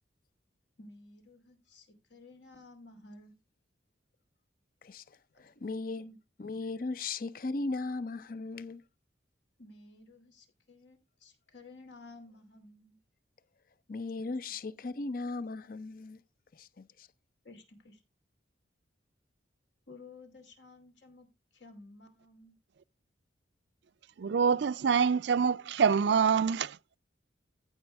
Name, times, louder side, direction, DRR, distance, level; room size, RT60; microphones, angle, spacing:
voice 1, 0.8-3.3 5.3-5.7 6.0-6.2 9.6-13.0 17.4-18.0 19.9-21.3 21.5-22.6, left 2 dB, 70° left, 2.6 m, -54 dB
voice 2, 4.8-6.0 6.4-8.8 13.9-16.2 16.5-17.1, left 3 dB, 50° left, 0.5 m, -37 dB
voice 3, 24.2-26.8, right 6 dB, 65° right, 0.4 m, -26 dB
14.5 x 5.6 x 3.4 m
head